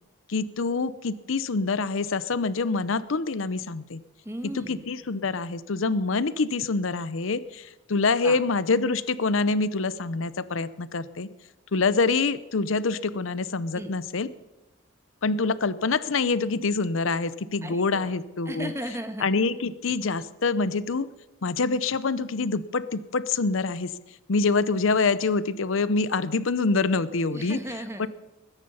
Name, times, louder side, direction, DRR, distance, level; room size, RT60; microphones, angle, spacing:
voice 1, 0.3-4.0 4.5-11.3 11.7-14.3 15.2-18.7 19.2-21.1 21.4-23.9 24.3-27.6 28.0-28.1, left 4 dB, 80° left, 16 dB, 0.7 m, -26 dB
voice 2, 4.2-4.8 8.2-8.4 13.7-13.9 17.6-18.1 18.4-19.3 27.3-28.1, equal, 15° right, 7 dB, 1.4 m, -36 dB
20.5 x 9.9 x 5.6 m, 1.0 s
head